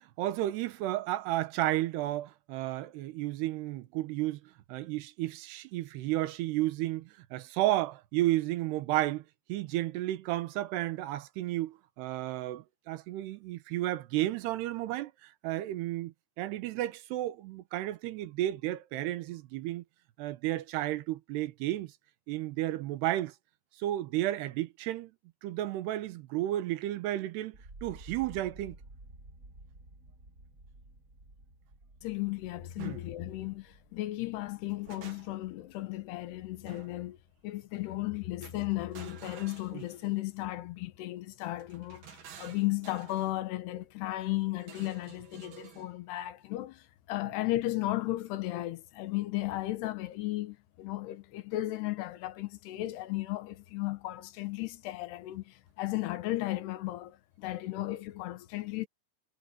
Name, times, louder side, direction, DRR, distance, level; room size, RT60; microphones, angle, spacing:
voice 1, 0.0-19.8 20.2-21.9 22.3-23.3 23.8-25.1 25.4-28.8 32.8-33.0 39.7-39.8, right 15 dB, 90° right, 3.1 m, -32 dB
sound 1, 27.5-37.5 37.8-38.5, right 2 dB, 20° right, 3.9 m, -54 dB
voice 2, 32.0-37.2 37.4-58.9, left 17 dB, 85° left, 3.2 m, -35 dB
sound 2, 32.8-33.0 34.4-35.5 36.7-37.1 38.4-40.3 41.6-43.4 44.6-45.9, right 9 dB, 60° right, 4.0 m, -52 dB
omnidirectional pair, 4.6 m